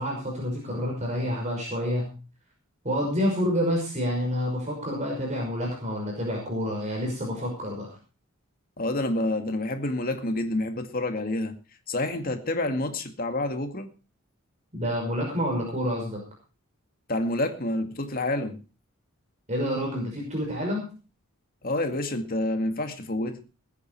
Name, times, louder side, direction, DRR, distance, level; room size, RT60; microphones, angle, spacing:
voice 1, 0.0-2.1 2.8-7.9 14.7-16.2 19.5-20.9, equal, 35° right, 5.7 m, -28 dB
voice 2, 8.8-11.5 11.9-13.9 17.1-18.6 21.6-23.4, left 1 dB, 45° left, 2.2 m, -28 dB
20.0 x 9.7 x 4.6 m
head